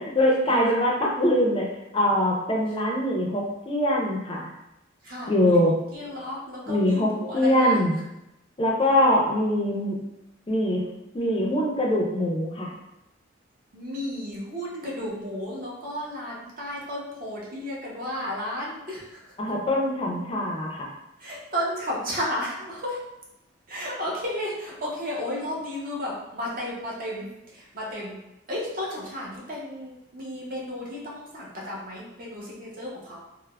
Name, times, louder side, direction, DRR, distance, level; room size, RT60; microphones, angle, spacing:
voice 1, 0.0-1.7 1.9-4.5 5.3-5.7 6.7-7.9 8.6-10.0 10.5-10.8 11.1-12.7 19.4-20.9, left 1 dB, 25° left, -2 dB, 0.4 m, -23 dB
voice 2, 5.0-7.8 13.7-19.2 21.2-23.0 23.7-28.2 28.5-33.2, left 1 dB, 45° right, -5 dB, 0.7 m, -33 dB
3.2 x 2.0 x 2.2 m, 0.89 s
head